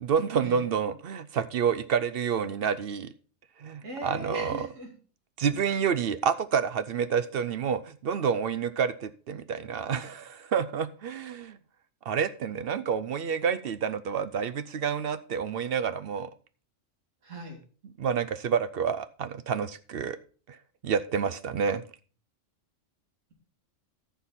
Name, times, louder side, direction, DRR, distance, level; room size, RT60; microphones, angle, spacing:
voice 1, 0.0-3.1 3.6-4.7 5.4-11.6 12.1-16.3 18.0-20.2 20.8-21.8, right 7 dB, 60° right, 14 dB, 0.7 m, -28 dB
voice 2, 3.8-4.9 17.2-17.6, right 1 dB, 90° right, 1 dB, 2.9 m, -39 dB
14.0 x 5.8 x 4.2 m, 0.39 s
omnidirectional pair, 1.3 m